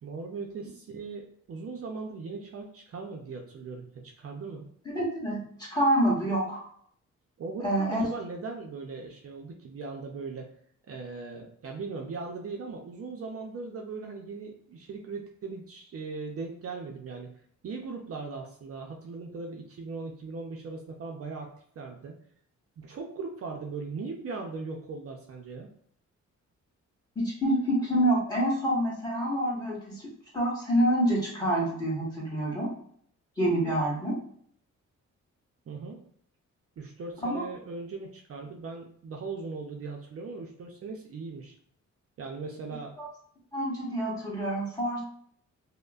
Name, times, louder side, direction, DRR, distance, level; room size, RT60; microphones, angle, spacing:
voice 1, 0.0-4.7 7.4-10.5 10.9-17.3 17.6-22.2 22.8-25.7 35.7-36.0 36.8-41.6 42.2-42.9, right 4 dB, 50° right, 1 dB, 0.5 m, -39 dB
voice 2, 4.8-5.4 5.7-6.7 7.6-8.1 27.1-30.1 30.3-32.7 33.4-34.2 37.2-37.4 43.0-43.1 43.5-45.0, right 1 dB, 15° left, -6 dB, 1.5 m, -27 dB
5.3 x 2.1 x 2.4 m, 0.63 s
wide cardioid pair, 140°, 29 cm